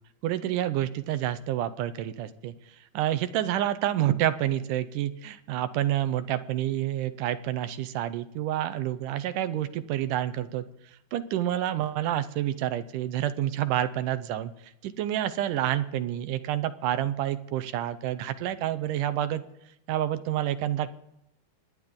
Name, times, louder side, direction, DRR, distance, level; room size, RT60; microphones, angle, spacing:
voice 1, 0.2-2.5 2.9-10.7 11.1-19.4 19.9-21.0, right 12 dB, 85° right, 11 dB, 2.4 m, -28 dB
26.5 x 9.9 x 3.7 m, 0.82 s
omnidirectional pair, 3.6 m